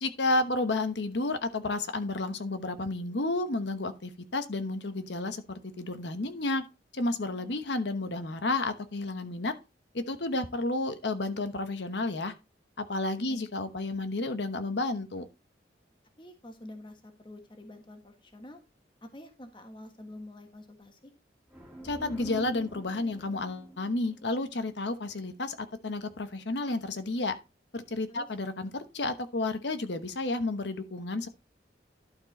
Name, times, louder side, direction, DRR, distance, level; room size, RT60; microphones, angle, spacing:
voice 1, 0.0-6.7 6.9-9.5 9.9-12.3 12.8-15.2 21.8-27.3 27.7-31.3, left 2 dB, 75° left, 1.0 m, -31 dB
voice 2, 16.2-18.6 19.0-21.1 28.1-28.3, left 1 dB, 25° left, 1.4 m, -47 dB
sound 1, 21.5-25.2, right 1 dB, 5° right, 2.0 m, -46 dB
11.5 x 4.6 x 4.1 m
head